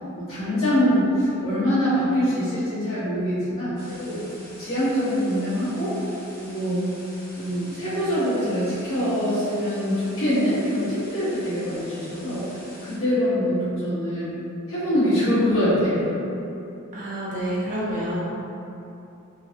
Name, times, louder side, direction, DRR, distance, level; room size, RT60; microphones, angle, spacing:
voice 1, 0.1-4.2 4.6-5.9 6.3-6.8 7.4-14.3 14.7-16.1, equal, 70° left, -13 dB, 1.3 m, -24 dB
sound 1, 3.8-13.0, left 1 dB, 45° left, 0.9 m, -46 dB
voice 2, 16.9-18.2, equal, 35° right, -8 dB, 0.8 m, -28 dB
3.1 x 2.3 x 2.8 m, 2.8 s
head